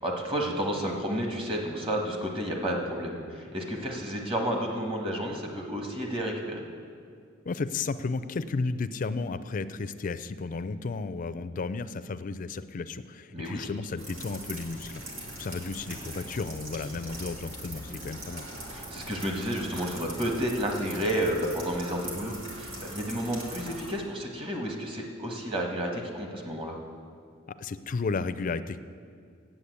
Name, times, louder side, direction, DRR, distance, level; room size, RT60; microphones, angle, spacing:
voice 1, 0.0-6.6 13.3-13.7 18.7-26.8, equal, 30° right, 1 dB, 1.4 m, -31 dB
voice 2, 7.5-18.5 27.5-28.8, left 4 dB, 40° left, 13 dB, 0.4 m, -33 dB
sound 1, 14.0-23.9, right 1 dB, 85° right, 2.1 m, -41 dB
8.5 x 7.9 x 8.1 m, 2.2 s
head